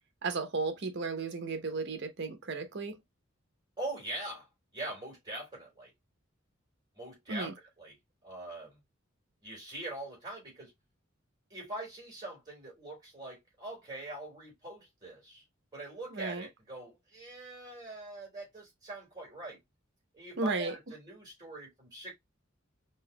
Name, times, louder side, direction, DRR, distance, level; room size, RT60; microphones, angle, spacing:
voice 1, 0.2-3.0 7.3-7.5 16.1-16.5 20.4-20.7, right 3 dB, 60° right, 0.9 m, -34 dB
voice 2, 3.8-5.9 6.9-7.5 7.8-8.0 8.2-8.8 9.4-10.7 11.5-15.4 15.7-19.6 20.1-22.1, right 2 dB, 20° right, 3.3 m, -43 dB
5.4 x 2.9 x 2.2 m
head